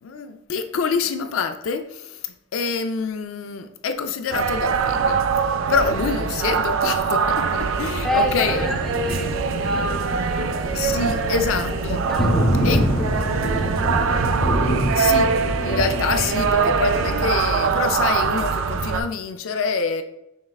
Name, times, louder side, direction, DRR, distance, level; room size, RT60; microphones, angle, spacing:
voice 1, 0.0-2.2 2.5-8.7 10.7-12.1 12.6-12.9 14.9-20.0, left 5 dB, 85° left, 0.4 m, -26 dB
sound 1, 4.3-19.0, right 5 dB, 75° right, 0.3 m, -23 dB
Thunder, 7.5-17.2, equal, 55° left, 0.8 m, -27 dB
voice 2, 8.0-10.9 11.2-11.5 12.1-14.2, equal, ahead, 0.6 m, -30 dB
sound 2, 9.3-15.1, equal, 55° right, 1.0 m, -40 dB
5.7 x 3.2 x 2.3 m
head